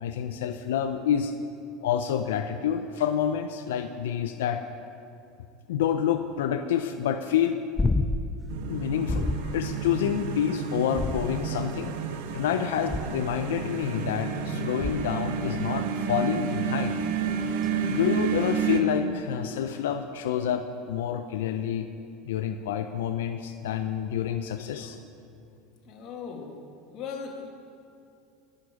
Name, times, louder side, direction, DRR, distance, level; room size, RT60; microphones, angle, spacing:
voice 1, 0.0-1.3 1.8-4.6 5.7-7.6 8.7-12.0 12.3-17.0 17.9-21.9 22.3-25.0, left 9 dB, 90° left, 8 dB, 0.5 m, -28 dB
sound 1, 7.8-8.4 9.1-9.6 10.9-11.7 12.9-13.4 14.8-15.2 17.6-17.7, left 2 dB, 15° left, 0.4 m, -29 dB
sound 2, 8.5-18.8, right 6 dB, 75° right, 1.0 m, -30 dB
voice 2, 25.8-26.6 26.9-27.5, left 6 dB, 45° left, 1 dB, 1.7 m, -38 dB
19.0 x 6.5 x 4.8 m, 2.6 s
supercardioid pair, 120°, 0 cm